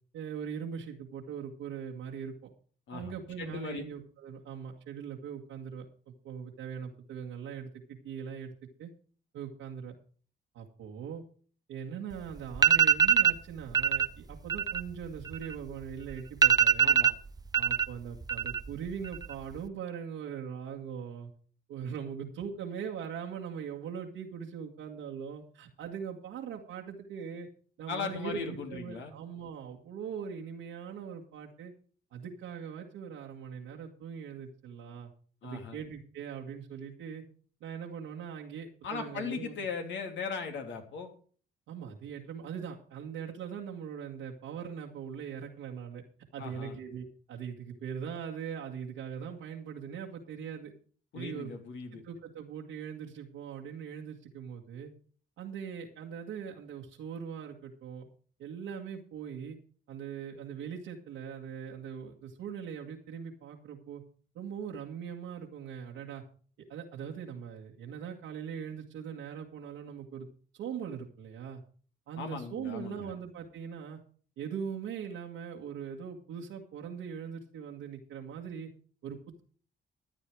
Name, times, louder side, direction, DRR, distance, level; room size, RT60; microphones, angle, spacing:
voice 1, 0.1-2.5 2.9-5.9 6.2-8.5 8.8-8.9 9.3-10.0 10.5-11.2 11.7-17.0 17.5-21.3 21.7-27.5 27.8-31.7 32.1-35.1 35.4-37.2 37.6-39.6 41.7-46.0 46.3-50.7 51.1-51.5 51.9-54.9 55.4-58.1 58.4-59.6 59.9-64.0 64.3-66.2 66.7-70.3 70.5-71.6 72.1-74.0 74.4-78.7 79.0-79.4, right 7 dB, 90° right, -2 dB, 1.9 m, -41 dB
voice 2, 2.9-3.8 16.8-17.1 27.9-29.1 35.4-35.8 38.8-41.1 46.4-46.8 51.1-52.0 72.2-73.1, left 5 dB, 70° left, 4 dB, 3.0 m, -38 dB
sound 1, 12.1-12.2 12.5-13.4 13.7-14.1 14.4-15.8 16.1-16.2 16.4-17.9 18.2-18.8 19.0-19.6, right 7 dB, 20° right, 0.7 m, -23 dB
14.0 x 9.5 x 4.8 m, 0.43 s
cardioid pair, 90°, 20 cm